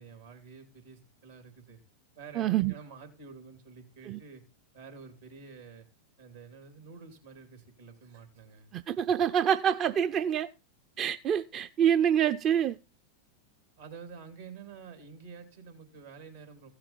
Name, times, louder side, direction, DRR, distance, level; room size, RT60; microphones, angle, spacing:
voice 1, 0.0-1.8 2.2-4.4 4.7-5.9 6.2-8.7 13.8-16.7, right 5 dB, 80° right, 3.8 m, -49 dB
voice 2, 2.4-2.7 4.1-4.2 8.7-10.5 11.0-12.8, right 9 dB, 35° right, 0.5 m, -26 dB
15.5 x 6.7 x 4.5 m
hypercardioid pair, 95°, 0 cm